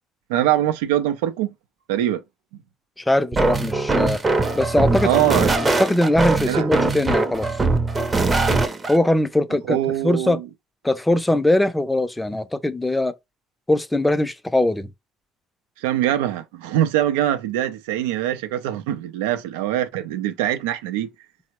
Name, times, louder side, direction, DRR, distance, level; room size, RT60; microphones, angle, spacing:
voice 1, 0.3-1.5 1.9-2.2 5.0-5.6 6.4-6.7 9.7-10.4 15.8-21.1, right 12 dB, 90° right, 0.4 m, -23 dB
voice 2, 3.0-4.2 4.6-5.3 5.6-7.5 8.9-9.8 10.0-10.4 10.8-13.2 13.7-14.9, left 1 dB, 10° left, 0.5 m, -21 dB
sound 1, 3.3-9.0, right 3 dB, 25° right, 0.6 m, -21 dB
3.4 x 2.0 x 2.9 m
supercardioid pair, 75°, 0 cm